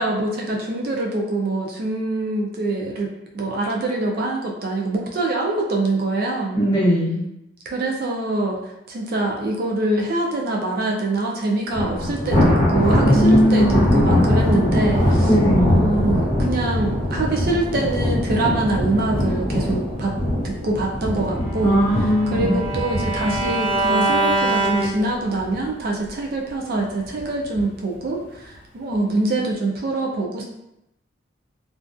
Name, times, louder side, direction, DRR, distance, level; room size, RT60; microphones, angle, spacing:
voice 1, 0.0-6.6 7.7-8.6 8.9-20.1 20.4-21.8 22.3-30.4, right 2 dB, 50° right, 0 dB, 0.4 m, -24 dB
voice 2, 6.6-7.2 13.0-13.9 15.2-15.8 21.6-22.6, equal, 25° left, -6 dB, 0.7 m, -18 dB
Thunder, 11.7-25.0 25.4-25.7 26.1-26.2 27.1-27.6, left 1 dB, 45° left, 1.0 m, -21 dB
Bowed string instrument, 21.4-25.6, right 2 dB, 25° right, 0.9 m, -24 dB
2.4 x 2.3 x 2.4 m, 0.85 s
head